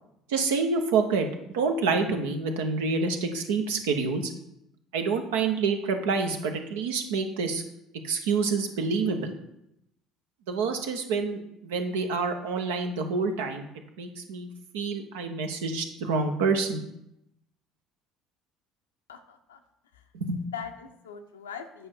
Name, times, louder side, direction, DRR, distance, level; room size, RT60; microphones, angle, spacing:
voice 1, 0.3-4.3 4.9-7.6 8.0-9.3 10.5-13.7 14.0-14.5 14.7-16.8 20.1-20.4, right 4 dB, 70° right, 5 dB, 0.9 m, -27 dB
voice 2, 19.1-19.6 19.9-20.0 20.5-21.9, left 7 dB, 80° left, 6 dB, 0.7 m, -41 dB
8.4 x 5.0 x 4.5 m, 0.81 s
figure-of-eight pair, 60°, 0 cm